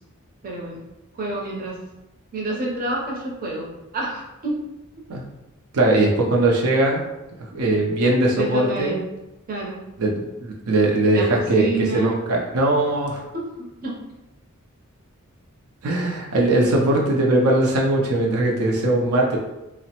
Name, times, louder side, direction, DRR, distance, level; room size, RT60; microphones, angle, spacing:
voice 1, 0.4-0.8 1.2-1.7 2.3-3.7 3.9-4.5 8.3-9.0 9.5-9.8 11.1-12.2 13.3-13.5 13.8-13.9, right 2 dB, 40° right, -2 dB, 0.6 m, -28 dB
voice 2, 5.7-7.0 7.5-9.0 10.0-10.1 10.4-13.2 15.8-19.4, right 2 dB, 85° right, -1 dB, 0.5 m, -20 dB
2.9 x 2.0 x 2.8 m, 0.97 s
head